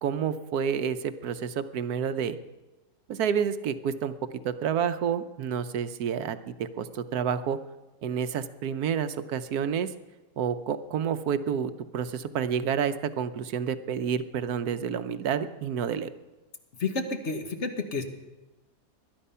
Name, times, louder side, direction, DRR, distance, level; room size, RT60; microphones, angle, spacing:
voice 1, 0.0-2.4 3.1-4.1 4.4-7.6 8.0-9.9 10.4-16.1, right 7 dB, 70° right, 11 dB, 1.3 m, -29 dB
voice 2, 16.8-18.0, left 3 dB, 45° left, 6 dB, 1.6 m, -30 dB
21.0 x 11.0 x 5.6 m, 1.1 s
omnidirectional pair, 1.7 m